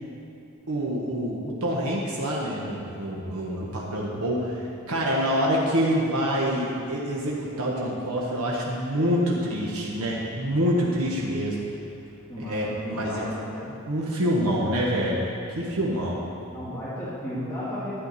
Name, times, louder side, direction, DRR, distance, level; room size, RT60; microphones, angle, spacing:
voice 1, 0.7-11.6 12.4-13.3 13.8-15.3 15.5-16.2, equal, 80° right, -4 dB, 1.3 m, -26 dB
voice 2, 12.3-13.7 16.5-17.9, left 1 dB, 15° left, -11 dB, 1.9 m, -34 dB
11.5 x 8.6 x 4.1 m, 2.7 s
head